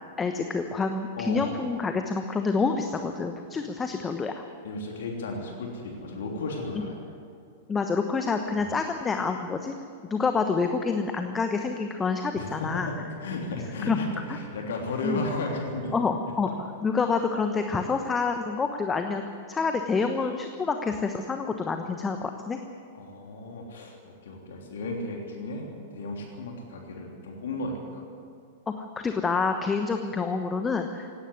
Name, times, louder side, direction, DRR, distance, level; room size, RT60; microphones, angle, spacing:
voice 1, 0.2-4.4 7.7-9.7 10.1-12.9 13.9-14.0 15.0-15.2 15.9-16.5 16.8-19.2 19.5-22.6 28.8-31.1, left 4 dB, 15° left, 6 dB, 1.1 m, -27 dB
voice 2, 1.2-1.5 3.5-3.7 4.6-7.0 12.3-15.9 16.5-16.6 18.2-18.3 22.9-24.0 24.2-28.0, left 2 dB, 60° left, 0 dB, 3.3 m, -34 dB
18.0 x 17.0 x 9.7 m, 2.3 s
figure-of-eight pair, 95°, 0 cm